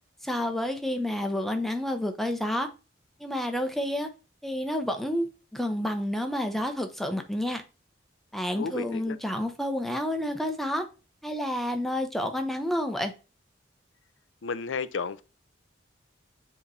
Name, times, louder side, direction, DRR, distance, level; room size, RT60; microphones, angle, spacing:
voice 1, 0.2-2.7 3.2-4.1 4.4-7.6 8.3-10.9 11.2-13.1, left 1 dB, ahead, 0.7 m, -29 dB
voice 2, 8.6-9.2 14.4-15.2, left 5 dB, 90° left, 0.5 m, -32 dB
7.7 x 3.1 x 4.1 m
head